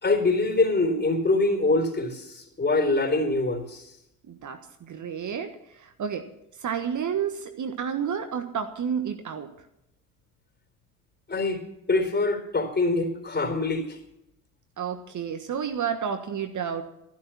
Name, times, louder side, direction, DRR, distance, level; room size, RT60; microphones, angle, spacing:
voice 1, 0.0-3.8 11.3-11.6 11.9-14.0, left 2 dB, 25° left, 6 dB, 3.9 m, -24 dB
voice 2, 4.3-6.3 6.6-9.5 14.8-16.8, right 7 dB, 45° right, 7 dB, 1.4 m, -31 dB
14.0 x 12.0 x 5.9 m, 0.81 s
figure-of-eight pair, 50°, 42 cm